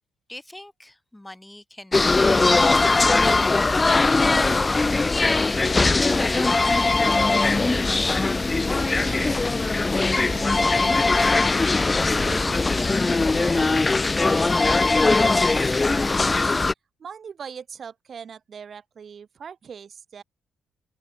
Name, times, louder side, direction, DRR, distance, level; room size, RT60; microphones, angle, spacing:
voice 1, 0.3-3.2, left 1 dB, 10° left, 4.3 m, -44 dB
sound 1, 1.9-16.7, left 3 dB, 25° left, 0.4 m, -20 dB
voice 2, 6.0-6.5 7.5-8.0 8.8-9.5 10.1-12.8 13.3-13.9 14.2-14.9 15.2-16.6 17.0-20.2, right 7 dB, 55° right, 5.9 m, -41 dB
open air
supercardioid pair, 65°, 0 cm